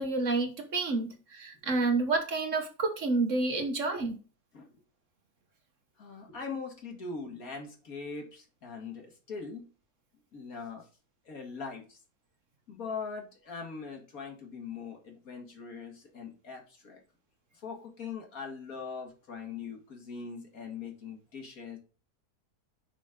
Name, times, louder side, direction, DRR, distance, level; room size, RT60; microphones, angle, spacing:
voice 1, 0.0-4.2, right 3 dB, 55° right, 5 dB, 1.3 m, -29 dB
voice 2, 6.0-9.7 10.3-10.8 11.2-12.0 12.7-17.0 17.5-21.8, left 5 dB, 60° left, 1 dB, 2.2 m, -41 dB
6.2 x 5.2 x 3.7 m, 0.35 s
omnidirectional pair, 1.7 m